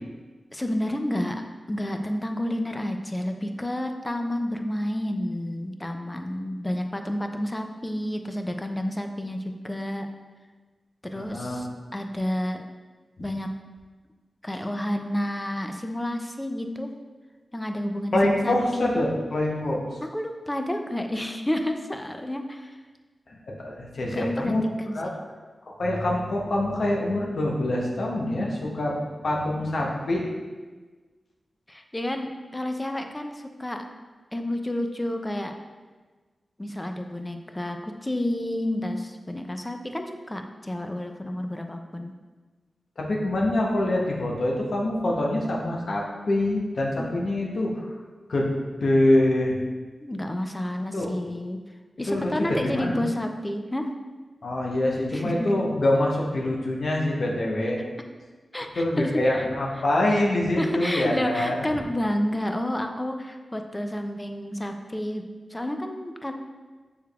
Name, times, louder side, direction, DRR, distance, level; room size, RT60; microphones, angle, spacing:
voice 1, 0.5-1.4 1.7-10.1 11.0-12.6 13.2-13.5 14.4-16.9 17.5-18.8 20.0-22.8 24.1-24.5 24.8-25.2 31.7-33.8 34.3-35.5 36.6-42.1 50.0-51.6 52.0-53.9 55.1-55.5 58.5-59.5 60.6-65.2 65.5-66.3, left 1 dB, 15° left, 5 dB, 0.4 m, -30 dB
voice 2, 11.2-11.6 18.1-19.8 23.3-24.6 24.9-25.1 25.7-29.0 29.2-30.3 43.0-47.8 48.3-48.5 48.8-49.6 50.9-51.1 52.1-53.1 54.4-57.8 58.8-61.8, left 1 dB, 70° left, -2 dB, 0.8 m, -25 dB
6.4 x 3.4 x 2.3 m, 1.3 s
wide cardioid pair, 75°, 0 cm